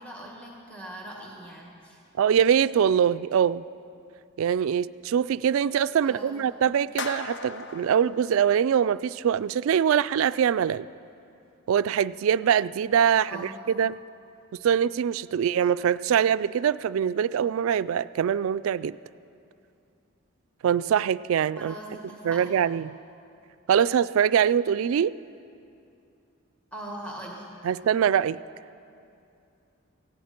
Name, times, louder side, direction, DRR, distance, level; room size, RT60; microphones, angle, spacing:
voice 1, 0.0-2.0 6.0-6.3 13.2-13.5 21.6-22.5 26.7-27.7, right 1 dB, 5° left, -3 dB, 1.8 m, -41 dB
voice 2, 2.2-3.6 4.4-10.9 11.7-14.0 14.6-19.0 20.6-21.7 22.2-23.0 23.7-25.1 27.6-28.4, right 8 dB, 75° right, 17 dB, 0.3 m, -23 dB
sound 1, 7.0-9.2, left 4 dB, 55° left, 0.6 m, -38 dB
18.5 x 16.0 x 4.4 m, 2.6 s
head